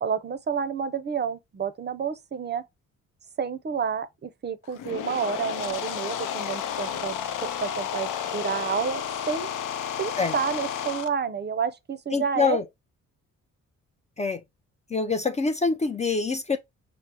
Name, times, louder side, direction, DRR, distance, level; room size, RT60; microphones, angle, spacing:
voice 1, 0.0-2.6 3.4-9.5 10.0-12.6, right 6 dB, 35° right, 0.5 m, -30 dB
sound 1, 4.7-11.1, left 9 dB, 85° left, 0.5 m, -32 dB
voice 2, 12.1-12.6 14.2-14.4 14.9-16.6, left 4 dB, 25° left, 0.4 m, -25 dB
5.9 x 2.0 x 2.8 m
cardioid pair, 90°, 30 cm